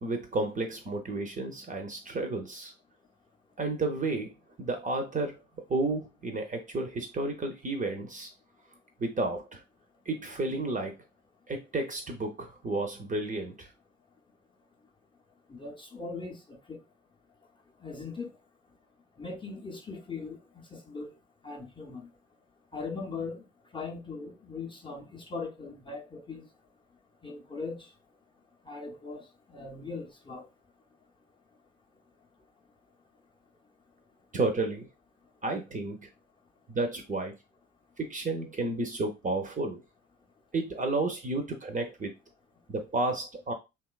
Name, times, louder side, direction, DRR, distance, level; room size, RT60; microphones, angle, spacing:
voice 1, 0.0-2.7 3.6-4.3 4.6-5.4 5.7-8.3 9.0-9.6 10.1-10.9 11.5-13.7 34.3-34.9 35.4-36.1 36.7-37.3 38.0-39.8 40.5-42.1 42.7-43.5, right 2 dB, 25° right, 0.6 m, -31 dB
voice 2, 15.5-16.4 16.7-16.8 17.8-18.3 19.2-20.4 20.7-21.1 21.4-22.0 22.7-23.4 23.7-26.4 27.2-27.8 28.7-29.2 29.5-30.4, left 4 dB, 15° left, 0.6 m, -39 dB
2.8 x 2.2 x 2.3 m
hypercardioid pair, 50°, 32 cm